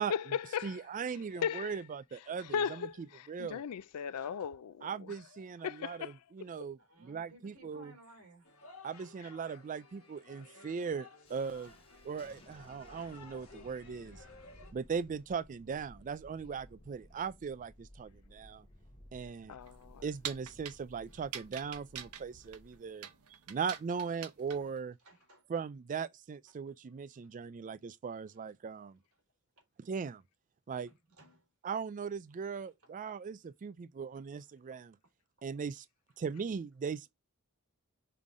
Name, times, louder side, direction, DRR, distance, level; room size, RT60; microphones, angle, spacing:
voice 1, 0.1-0.8 1.4-1.7 2.5-4.9 5.6-6.1 19.5-20.0, left 7 dB, 85° left, 0.4 m, -36 dB
voice 2, 0.6-2.9 3.3-3.6 4.8-7.9 8.8-11.7 12.0-14.2 14.7-18.7 19.1-19.6 20.0-25.0 25.5-29.0 29.8-30.2 30.7-30.9 31.6-34.9 35.4-35.8 36.2-37.1, right 6 dB, 35° right, 0.3 m, -39 dB
voice 3, 4.0-4.6 5.6-5.7 6.8-8.5 11.6-11.8 12.9-15.0 16.7-17.2 25.0-25.4 26.5-26.6 27.2-27.3 29.6-29.7 30.9-31.5 32.6-33.3 34.2-34.3 34.7-34.8 35.5-35.6, right 1 dB, 70° right, 3.4 m, -62 dB
sound 1, 8.4-14.7, left 3 dB, 65° left, 1.6 m, -56 dB
Thunderstorm, 11.3-22.8, left 1 dB, 25° left, 1.4 m, -58 dB
sound 2, 19.6-24.8, right 9 dB, 85° right, 1.0 m, -46 dB
5.6 x 3.7 x 4.8 m
head